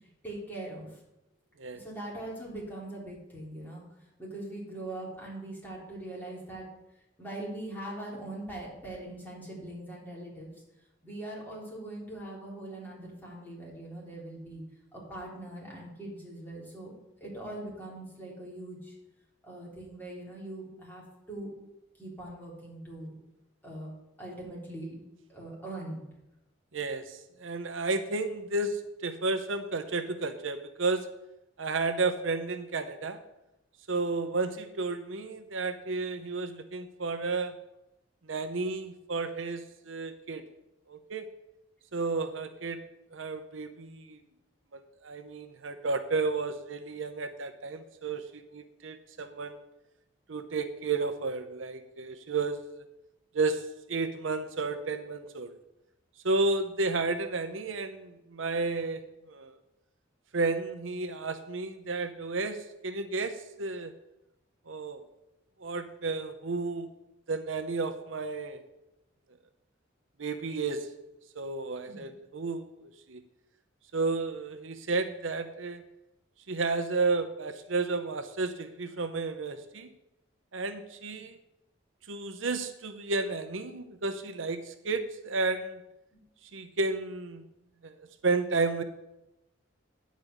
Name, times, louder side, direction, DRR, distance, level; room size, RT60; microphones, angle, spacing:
voice 1, 0.2-0.9 1.7-3.8 4.2-6.6 7.2-10.5 11.0-14.6 14.9-16.9 17.2-18.9 19.4-21.5 22.0-23.1 23.6-23.9 24.2-24.9 25.3-26.0 71.9-72.0 86.1-86.2, right 1 dB, 10° left, -5 dB, 3.7 m, -41 dB
voice 2, 26.7-31.1 31.6-33.2 33.9-37.5 38.3-40.4 40.9-41.3 41.9-42.8 43.1-44.2 44.7-49.6 50.3-52.6 53.3-53.6 53.9-55.6 56.2-59.0 59.3-59.6 60.3-63.9 64.7-65.0 65.6-66.9 67.3-68.6 70.2-70.9 71.3-72.7 73.1-73.2 73.9-75.8 76.5-79.9 80.5-81.4 82.1-85.8 86.5-87.4 87.8-88.0 88.2-88.8, right 3 dB, 80° right, 9 dB, 0.8 m, -32 dB
9.9 x 5.2 x 8.0 m, 0.90 s
head